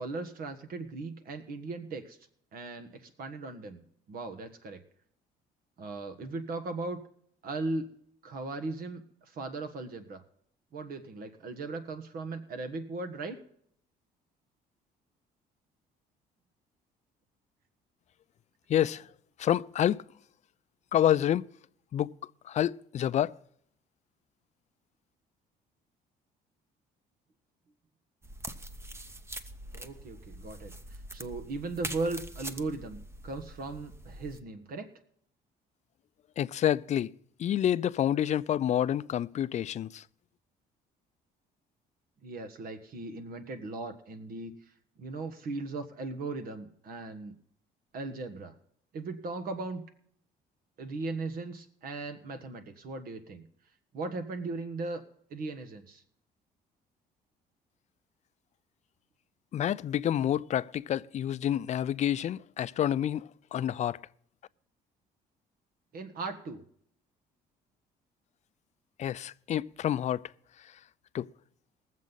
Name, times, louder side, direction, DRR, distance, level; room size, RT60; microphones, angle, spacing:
voice 1, 0.0-2.2 2.5-4.8 5.8-7.0 7.4-7.9 8.2-10.2 10.7-13.4 29.7-34.9 42.2-44.5 45.0-47.3 47.9-48.5 48.9-49.8 50.8-53.5 53.9-55.0 55.3-56.0 65.9-66.6, right 3 dB, 60° right, 1.4 m, -38 dB
voice 2, 18.7-19.1 19.4-20.0 20.9-21.5 21.9-22.1 22.4-23.4 36.4-37.1 37.4-40.0 59.5-64.0 69.0-70.3 71.1-71.3, left 11 dB, 45° left, 0.5 m, -28 dB
sound 1, 28.2-34.4, right 1 dB, 15° right, 0.9 m, -44 dB
21.5 x 7.4 x 4.0 m
cardioid pair, 110°, 17 cm